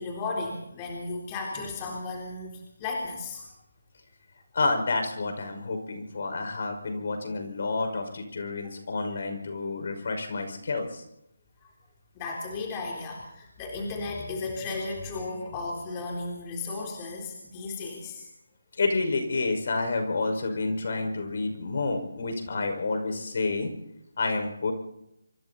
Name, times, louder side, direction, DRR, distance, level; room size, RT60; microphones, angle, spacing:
voice 1, 0.0-3.4 11.6-11.7 12.2-18.3, left 3 dB, 20° left, -1 dB, 3.7 m, -35 dB
voice 2, 4.5-11.0 18.8-23.7 24.2-24.7, left 3 dB, 50° left, 5 dB, 5.4 m, -29 dB
26.0 x 24.0 x 4.3 m, 0.82 s
figure-of-eight pair, 165°, 0 cm